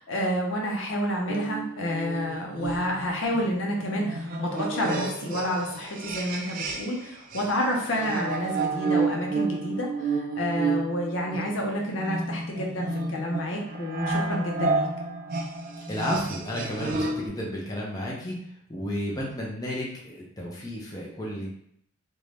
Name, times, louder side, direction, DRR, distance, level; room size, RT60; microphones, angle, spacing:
voice 1, 0.0-14.9, left 1 dB, 70° left, 0 dB, 0.6 m, -29 dB
sound 1, 1.3-7.0 7.3-17.3, right 3 dB, 45° right, 0.3 m, -31 dB
voice 2, 15.9-18.4 18.7-21.5, left 1 dB, 20° left, -4 dB, 0.5 m, -32 dB
2.6 x 2.2 x 3.2 m, 0.68 s
head